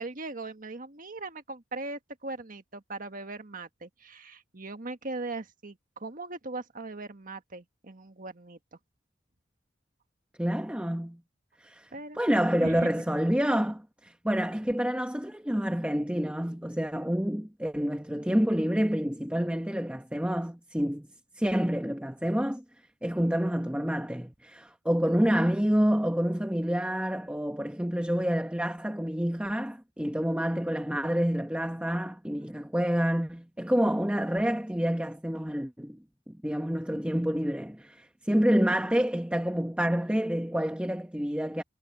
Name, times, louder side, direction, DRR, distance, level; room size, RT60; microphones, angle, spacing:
voice 1, 0.0-8.8 11.9-12.2 12.5-12.9, right 2 dB, 45° right, 1.6 m, -39 dB
voice 2, 10.4-11.2 11.6-11.9 12.2-21.1 21.4-22.6 23.0-36.0 36.3-41.6, equal, 5° right, 1.2 m, -28 dB
head